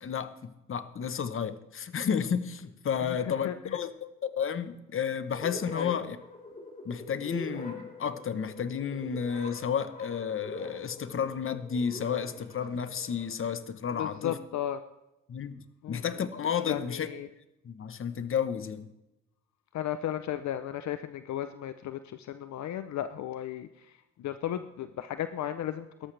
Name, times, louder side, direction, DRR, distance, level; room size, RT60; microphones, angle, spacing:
voice 1, 0.0-6.2 6.8-14.4 15.3-17.1 17.6-18.9, left 7 dB, 45° left, 12 dB, 1.1 m, -32 dB
voice 2, 3.0-3.8 5.7-6.0 13.9-14.8 15.8-16.0 16.7-17.3 19.7-26.1, left 11 dB, 65° left, 11 dB, 0.7 m, -35 dB
sound 1, 5.3-13.3, left 1 dB, 30° left, 4.0 m, -44 dB
18.0 x 13.5 x 3.4 m, 0.92 s
cardioid pair, 90°, 30 cm